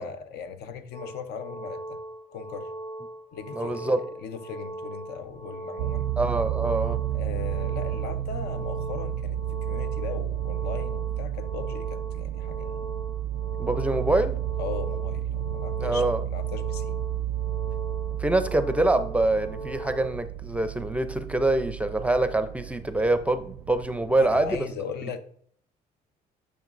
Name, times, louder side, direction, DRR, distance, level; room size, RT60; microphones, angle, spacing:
voice 1, 0.0-2.0 2.3-2.7 3.3-6.1 7.1-9.4 9.7-12.9 14.6-17.0 24.2-25.2, left 7 dB, 75° left, 0.7 m, -38 dB
sound 1, 0.9-20.1, right 1 dB, 35° left, 2.8 m, -40 dB
voice 2, 3.5-4.1 6.2-7.0 13.6-14.4 15.8-16.2 18.2-24.7, right 2 dB, 10° right, 0.5 m, -25 dB
sound 2, 5.8-24.6, right 12 dB, 90° right, 0.4 m, -32 dB
10.5 x 6.0 x 2.5 m
cardioid pair, 110°, 17 cm